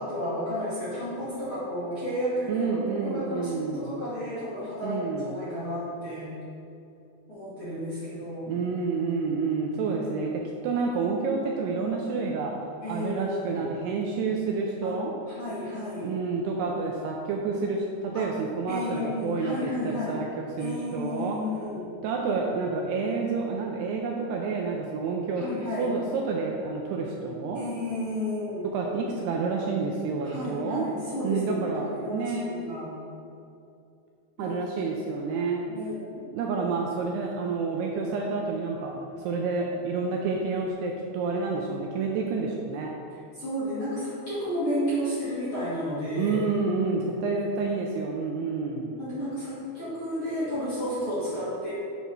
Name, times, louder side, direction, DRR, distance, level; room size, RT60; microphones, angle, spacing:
voice 1, 0.0-2.8 3.0-6.3 7.3-8.6 12.8-13.6 14.8-14.9 15.4-16.1 18.1-18.3 18.7-20.2 20.6-21.9 25.4-25.9 27.5-28.7 30.2-32.9 34.4-34.6 35.7-36.0 43.3-46.3 49.0-51.7, left 1 dB, 40° left, -11 dB, 2.2 m, -32 dB
voice 2, 2.5-3.9 4.8-5.3 8.5-12.5 12.9-15.2 16.0-21.4 22.0-25.4 25.8-27.6 28.7-30.9 31.2-32.6 34.4-35.6 36.3-42.9 46.2-49.0, right 4 dB, 80° right, 0 dB, 2.5 m, -29 dB
9.3 x 4.6 x 5.5 m, 2.6 s
omnidirectional pair, 5.2 m